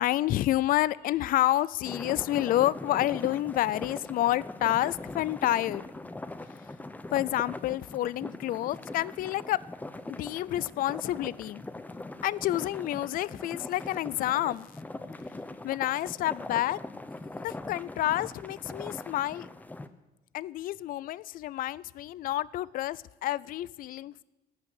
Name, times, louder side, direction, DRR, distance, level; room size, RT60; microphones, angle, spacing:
voice 1, 0.0-5.8 7.1-9.6 10.1-11.6 12.2-14.7 15.6-16.8 17.4-19.5 20.3-24.2, left 14 dB, 55° left, 21 dB, 0.4 m, -29 dB
sound 1, 1.8-19.9, left 2 dB, 10° left, 0.7 m, -41 dB
15.0 x 5.9 x 9.3 m, 1.0 s
cardioid pair, 110°, 17 cm